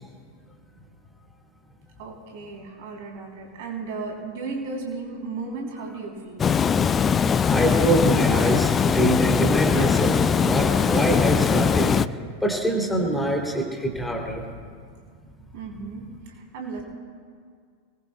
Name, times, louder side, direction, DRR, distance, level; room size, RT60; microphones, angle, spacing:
voice 1, 2.0-6.5 15.5-16.8, right 4 dB, 50° right, 0 dB, 3.2 m, -35 dB
Water, 6.4-12.1, left 6 dB, 20° left, 0.3 m, -21 dB
voice 2, 7.5-14.4, right 1 dB, 5° left, -1 dB, 2.8 m, -24 dB
28.5 x 20.5 x 2.2 m, 2.1 s
figure-of-eight pair, 90°, 0 cm